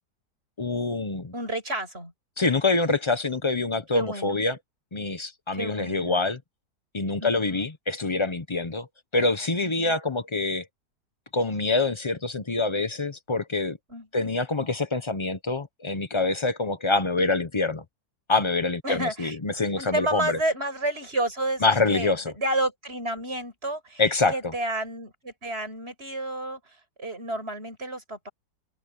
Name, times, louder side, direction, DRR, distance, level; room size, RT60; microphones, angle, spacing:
voice 1, 0.6-1.3 2.4-4.6 4.9-6.4 6.9-8.9 9.1-10.7 11.3-13.8 14.1-17.8 18.3-20.4 21.6-22.3 24.0-24.3, left 3 dB, 30° left, 0.6 m, -25 dB
voice 2, 1.3-2.1 3.9-4.4 5.5-6.2 7.2-7.6 9.6-10.0 13.9-14.3 18.8-19.4 19.8-24.0 24.3-28.3, right 1 dB, 35° right, 8.0 m, -31 dB
omnidirectional pair, 1.8 m